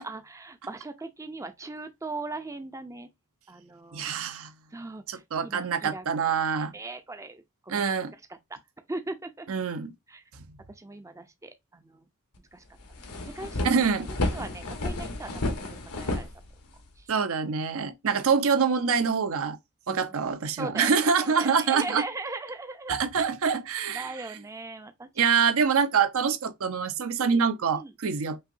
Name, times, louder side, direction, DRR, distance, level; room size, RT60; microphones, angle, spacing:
voice 1, 0.0-3.1 3.5-4.1 4.7-6.1 6.6-7.9 8.9-9.5 10.1-10.2 10.7-12.0 12.5-12.6 13.0-13.7 14.1-15.5 16.0-16.3 17.0-17.1 19.9-20.1 20.6-20.9 21.2-22.9 23.9-25.3 27.3-27.4 27.7-27.9, right 2 dB, 15° right, 0.5 m, -39 dB
voice 2, 3.9-4.5 5.1-6.7 7.7-8.1 9.5-9.9 13.6-14.1 17.1-19.6 19.9-22.0 22.9-24.1 25.2-28.4, right 6 dB, 65° right, 0.6 m, -25 dB
sound 1, 12.4-12.5 12.8-17.0, left 2 dB, 90° left, 1.2 m, -32 dB
5.6 x 2.7 x 2.5 m
head